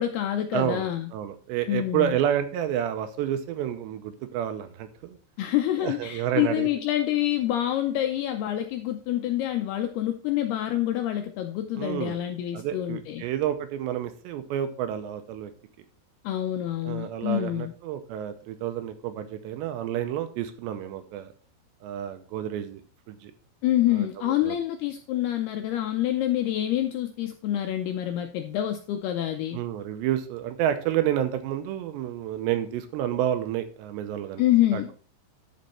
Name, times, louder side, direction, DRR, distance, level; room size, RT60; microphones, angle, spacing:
voice 1, 0.0-1.1 1.7-2.2 5.4-13.2 16.2-17.7 23.6-29.6 34.4-34.9, left 12 dB, 80° left, 6 dB, 2.3 m, -27 dB
voice 2, 0.5-5.2 5.8-6.7 11.8-12.2 12.5-15.5 16.8-21.3 21.8-22.8 23.1-23.3 23.9-24.6 29.5-34.4 34.7-34.9, right 11 dB, 80° right, 9 dB, 2.9 m, -30 dB
12.0 x 5.3 x 4.3 m, 0.40 s
omnidirectional pair, 5.3 m